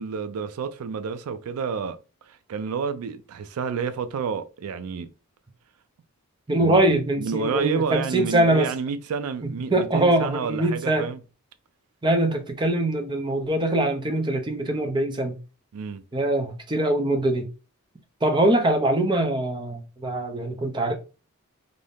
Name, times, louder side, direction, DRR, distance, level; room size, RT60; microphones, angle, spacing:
voice 1, 0.0-2.0 2.2-5.1 6.5-11.2 15.7-16.0, right 5 dB, 80° right, 0.4 m, -30 dB
voice 2, 6.5-8.7 9.7-11.1 12.0-15.4 16.1-17.5 18.2-20.9, right 1 dB, 20° right, 0.6 m, -23 dB
2.7 x 2.6 x 3.3 m
head